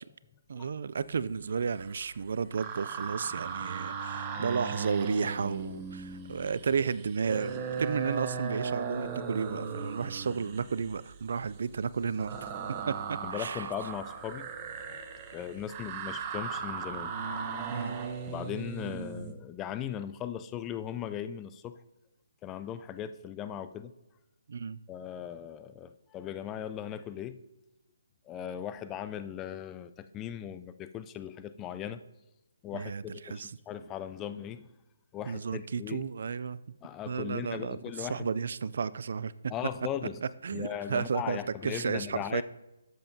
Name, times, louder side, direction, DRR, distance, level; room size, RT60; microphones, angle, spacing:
voice 1, 0.5-12.5 12.9-13.0 13.3-13.7 17.7-18.0 24.5-24.8 32.7-33.5 35.3-36.6 37.1-39.5 40.2-42.4, right 6 dB, 60° right, 18 dB, 0.3 m, -33 dB
sound 1, 1.5-2.1 2.4-19.3, right 5 dB, 25° right, 0.9 m, -38 dB
voice 2, 13.2-14.5 15.3-17.1 18.3-21.8 22.4-23.9 24.9-27.4 28.3-32.0 32.6-34.7 35.1-36.1 36.8-38.3 39.5-40.2 40.5-42.4, left 9 dB, 15° left, 11 dB, 0.4 m, -38 dB
12.0 x 7.7 x 2.7 m, 0.96 s
hypercardioid pair, 150°, 0 cm